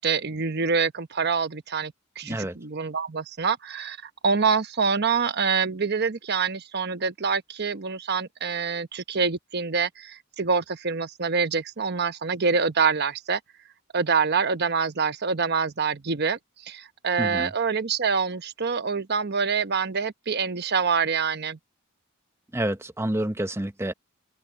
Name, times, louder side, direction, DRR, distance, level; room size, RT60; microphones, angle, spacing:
voice 1, 0.0-4.0 4.2-13.4 13.9-16.4 16.6-21.6, right 5 dB, 55° right, 1.0 m, -26 dB
voice 2, 2.2-2.6 17.2-17.5 22.5-23.9, right 1 dB, 15° right, 0.9 m, -28 dB
open air
head